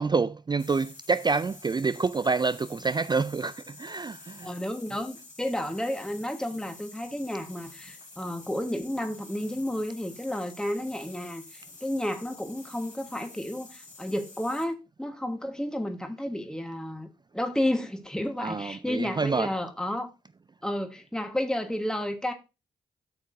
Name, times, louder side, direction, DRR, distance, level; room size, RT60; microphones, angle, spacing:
voice 1, 0.0-4.5 18.4-19.6, right 4 dB, 25° right, 0.3 m, -27 dB
sound 1, 0.6-14.7, left 3 dB, 45° left, 2.9 m, -49 dB
voice 2, 4.4-17.1 17.3-20.1 20.6-22.3, left 1 dB, 5° left, 1.3 m, -31 dB
11.0 x 6.4 x 2.6 m
supercardioid pair, 40°, 18 cm